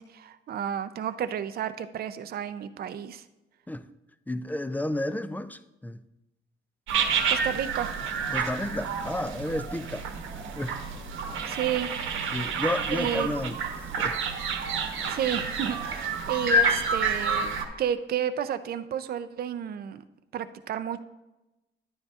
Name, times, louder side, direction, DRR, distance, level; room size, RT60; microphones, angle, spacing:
voice 1, 0.0-3.2 7.3-7.9 11.4-11.9 12.9-13.3 14.9-17.5 17.8-20.0 20.3-21.0, right 9 dB, 50° right, 0.5 m, -31 dB
voice 2, 4.3-6.0 8.3-10.8 11.2-11.3 12.3-14.2 14.6-14.7, left 1 dB, 10° left, 0.4 m, -32 dB
sound 1, 6.9-17.7, right 3 dB, 85° right, 1.0 m, -29 dB
10.0 x 9.7 x 2.4 m
cardioid pair, 90°, 20 cm